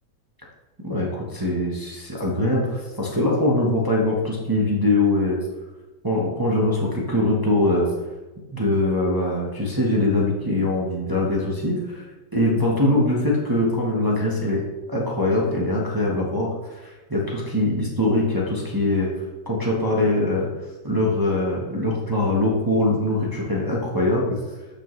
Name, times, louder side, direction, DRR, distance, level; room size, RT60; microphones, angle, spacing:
voice 1, 0.8-5.4 6.0-7.9 8.5-12.0 12.3-14.6 14.9-16.5 16.8-19.1 19.5-20.5 20.8-24.3, left 1 dB, 15° right, -4 dB, 0.9 m, -22 dB
11.5 x 4.8 x 3.2 m, 1.2 s
omnidirectional pair, 1.9 m